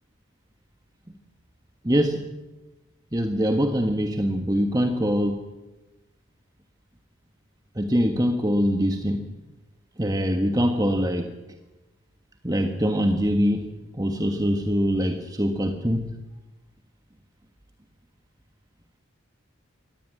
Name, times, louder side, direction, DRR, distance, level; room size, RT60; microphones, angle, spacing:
voice 1, 1.8-2.3 3.1-5.4 7.7-9.2 10.0-11.3 12.4-16.1, equal, 20° right, 5 dB, 1.4 m, -23 dB
24.0 x 18.0 x 9.2 m, 1.1 s
head